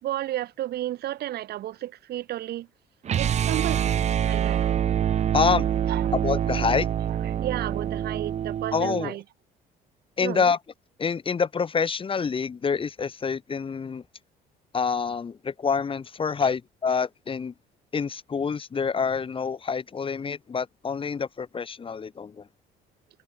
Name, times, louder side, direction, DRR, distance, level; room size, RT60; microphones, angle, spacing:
voice 1, 0.0-2.7 3.2-4.6 5.9-6.1 7.2-9.2 10.2-10.5 16.4-16.5, right 14 dB, 70° right, 3.7 m, -33 dB
sound 1, 3.1-9.1, right 9 dB, 40° right, 0.7 m, -25 dB
voice 2, 5.3-5.7 6.2-6.9 8.7-9.2 10.2-10.6 11.0-14.0 14.7-17.5 17.9-22.5, left 5 dB, 30° left, 2.5 m, -27 dB
cardioid pair, 110°, 17 cm